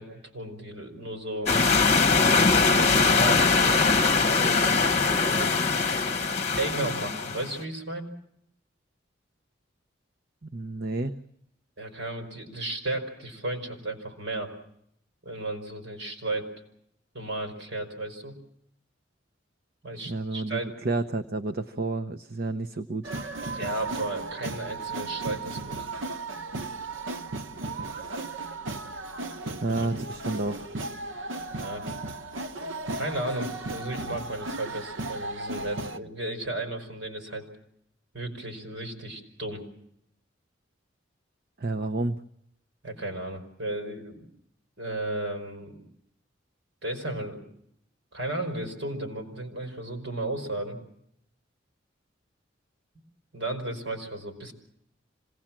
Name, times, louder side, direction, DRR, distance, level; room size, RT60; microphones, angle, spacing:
voice 1, 0.0-1.5 2.6-4.8 5.1-5.5 6.4-8.1 11.8-14.5 15.2-16.5 17.1-18.3 19.8-20.8 23.5-25.9 29.7-29.8 31.5-31.8 32.9-37.5 38.1-39.6 42.8-44.2 44.8-45.8 46.8-47.4 48.1-50.8 53.3-54.5, right 2 dB, 70° right, 4 dB, 5.3 m, -34 dB
sound 1, 1.5-7.5, left 4 dB, 35° left, 1.1 m, -22 dB
voice 2, 10.4-11.2 20.0-20.6 20.8-23.1 29.6-30.7 41.6-42.2, right 2 dB, 55° right, 9 dB, 0.8 m, -30 dB
sound 2, 23.0-36.0, right 2 dB, 90° right, 1.1 m, -35 dB
26.5 x 19.0 x 7.5 m, 0.75 s
head